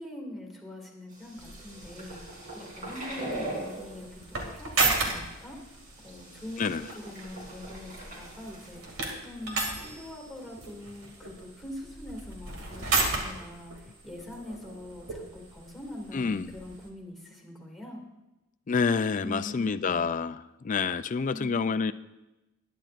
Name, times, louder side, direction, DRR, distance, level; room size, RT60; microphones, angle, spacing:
voice 1, 0.0-5.7 6.0-18.0 19.2-20.1 21.3-21.7, left 1 dB, ahead, 1 dB, 2.3 m, -43 dB
sound 1, 1.1-4.1 4.5-4.9 5.6-5.7 6.0-8.8, right 1 dB, 40° right, 3.6 m, -41 dB
sound 2, 1.4-16.9, right 3 dB, 90° right, 2.4 m, -35 dB
voice 2, 16.1-16.5 18.7-21.9, left 5 dB, 40° left, 13 dB, 0.4 m, -28 dB
21.0 x 10.0 x 2.5 m, 0.99 s
head